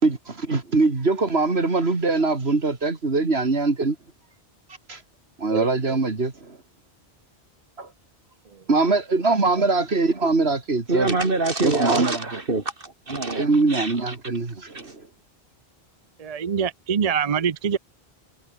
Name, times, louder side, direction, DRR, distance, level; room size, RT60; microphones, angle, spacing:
voice 1, 0.0-4.0 4.9-5.0 5.4-6.6 8.7-11.2 11.6-12.4 13.3-15.1, right 3 dB, 75° right, 2.9 m, -22 dB
voice 2, 10.9-14.1, right 3 dB, 60° right, 3.1 m, -25 dB
voice 3, 16.2-17.8, right 7 dB, 40° right, 0.7 m, -24 dB
omnidirectional pair, 1.1 m